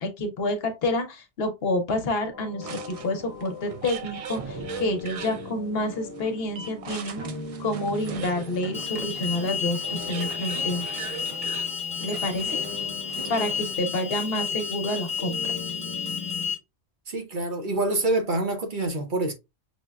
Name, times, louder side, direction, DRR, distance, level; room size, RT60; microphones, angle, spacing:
voice 1, 0.0-7.2 7.6-10.9 12.0-12.6 13.3-15.4, left 1 dB, 65° left, 0.9 m, -28 dB
sound 1, 2.3-16.5, left 3 dB, 20° left, 1.1 m, -40 dB
sound 2, 2.6-13.9, right 6 dB, 70° right, 0.3 m, -40 dB
Alarm, 8.7-16.5, left 6 dB, 5° left, 0.9 m, -31 dB
voice 2, 17.1-19.3, right 2 dB, 50° right, 0.8 m, -26 dB
6.1 x 2.1 x 2.3 m
omnidirectional pair, 1.1 m